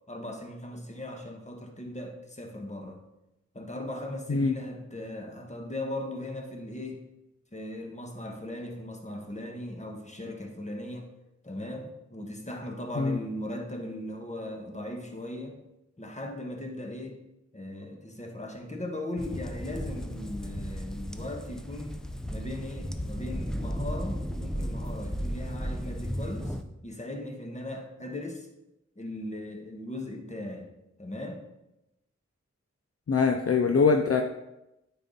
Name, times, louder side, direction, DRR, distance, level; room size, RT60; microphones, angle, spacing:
voice 1, 0.1-3.0 3.5-7.0 7.5-11.1 11.4-15.6 16.0-17.2 17.5-22.0 22.3-26.6 26.8-28.5 29.0-30.7 31.0-31.4, left 1 dB, 25° left, 2 dB, 1.3 m, -38 dB
sound 1, 19.2-26.6, equal, ahead, 0.5 m, -35 dB
voice 2, 33.1-34.2, left 5 dB, 55° left, 5 dB, 0.5 m, -23 dB
8.9 x 4.1 x 3.8 m, 0.91 s
wide cardioid pair, 45°, 29 cm